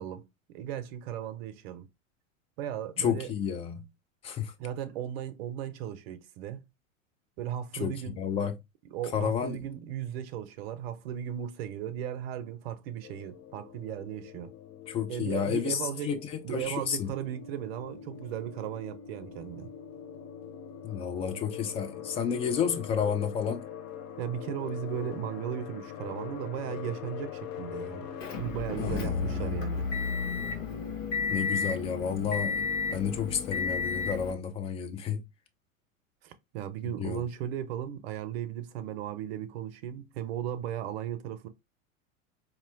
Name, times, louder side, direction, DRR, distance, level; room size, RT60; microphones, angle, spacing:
voice 1, 0.0-1.9 2.6-3.3 4.6-6.6 7.4-8.2 8.9-14.5 15.1-16.2 16.4-19.7 24.2-28.1 28.4-29.9 36.2-41.5, right 10 dB, 50° right, 0.7 m, -36 dB
voice 2, 3.0-3.9 4.2-4.5 7.7-8.6 9.1-9.6 14.9-17.1 20.8-23.6 28.8-29.6 31.3-35.2 36.8-37.2, left 7 dB, 15° left, 0.3 m, -31 dB
sound 1, 13.0-29.5, left 10 dB, 40° left, 0.9 m, -43 dB
sound 2, 17.1-30.6, left 1 dB, 10° right, 2.6 m, -53 dB
Motor vehicle (road) / Engine, 28.2-34.3, left 5 dB, 65° left, 1.2 m, -32 dB
4.2 x 2.8 x 2.6 m
figure-of-eight pair, 85°, 40 cm